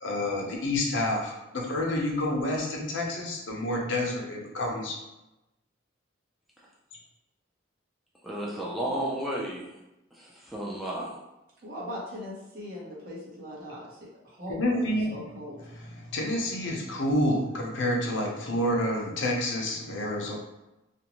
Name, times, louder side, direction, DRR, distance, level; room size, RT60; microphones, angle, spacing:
voice 1, 0.0-4.9 14.5-15.2 16.0-20.3, left 1 dB, 70° left, -1 dB, 0.6 m, -28 dB
voice 2, 8.2-9.8 10.1-11.2, right 1 dB, ahead, -5 dB, 0.4 m, -33 dB
voice 3, 11.6-15.6, equal, 50° right, -6 dB, 0.9 m, -40 dB
2.5 x 2.2 x 2.9 m, 0.96 s
head